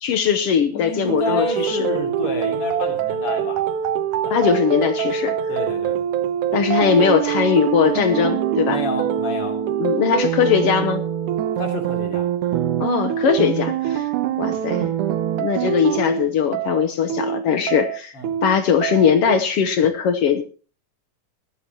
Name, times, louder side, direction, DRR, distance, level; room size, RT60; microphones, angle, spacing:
voice 1, 0.0-1.9 4.3-5.4 6.5-8.8 9.8-11.0 12.8-14.1 14.4-14.9 15.4-18.1 18.4-20.4, left 7 dB, 65° left, 9 dB, 1.6 m, -20 dB
voice 2, 0.7-3.8 4.2-4.5 5.5-6.0 8.7-9.6 11.6-12.3 18.1-18.3, left 3 dB, 50° left, 3 dB, 3.8 m, -29 dB
sound 1, 1.1-19.4, right 9 dB, 80° right, 2.4 m, -24 dB
19.0 x 13.5 x 2.9 m, 0.38 s
omnidirectional pair, 3.5 m